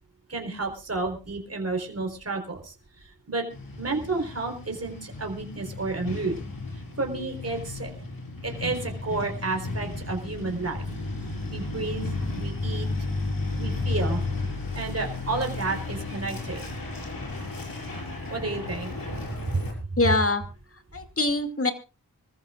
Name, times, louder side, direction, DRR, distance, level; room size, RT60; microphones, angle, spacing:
voice 1, 0.3-2.7 3.0-3.5 3.8-6.4 7.0-7.9 8.4-10.8 11.5-12.1 12.3-12.9 13.6-14.2 14.7-16.6 18.3-18.9 19.5-19.6, right 3 dB, 40° right, 3 dB, 4.2 m, -31 dB
Truck, 3.5-19.7, left 2 dB, 60° left, 6.5 m, -33 dB
voice 2, 20.0-20.4 20.9-21.7, left 2 dB, 35° left, 7 dB, 2.6 m, -23 dB
25.5 x 14.5 x 2.5 m, 0.33 s
cardioid pair, 55°, 38 cm